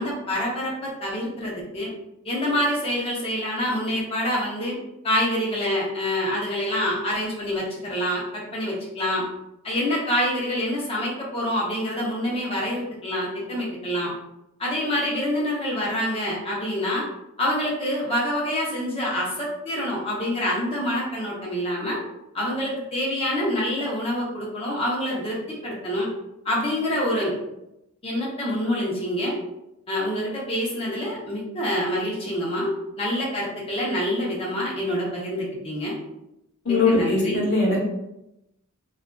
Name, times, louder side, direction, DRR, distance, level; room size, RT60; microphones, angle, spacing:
voice 1, 0.0-1.9 2.2-4.8 5.0-9.2 9.6-14.1 14.6-17.0 17.4-22.0 22.3-26.1 26.4-27.3 28.0-29.4 29.9-32.7 33.0-36.0 36.7-37.4, equal, 25° left, -4 dB, 0.6 m, -26 dB
voice 2, 36.6-37.8, left 3 dB, 55° left, -5 dB, 0.8 m, -21 dB
2.4 x 2.3 x 2.2 m, 0.87 s
head